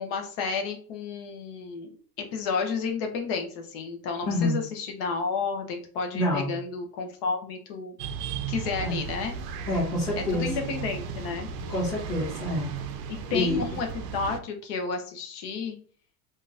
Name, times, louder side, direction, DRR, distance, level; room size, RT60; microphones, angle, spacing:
voice 1, 0.0-1.9 2.3-7.9 8.5-9.3 10.2-11.5 13.1-15.8, left 5 dB, 35° left, 4 dB, 0.6 m, -31 dB
voice 2, 4.2-4.6 6.1-6.5 8.8-9.0 9.7-10.5 11.7-12.7 13.3-13.6, left 1 dB, 5° left, -9 dB, 1.5 m, -27 dB
sound 1, 8.0-14.4, right 7 dB, 80° right, 0.6 m, -35 dB
3.6 x 2.4 x 2.6 m, 0.43 s
supercardioid pair, 170°, 47 cm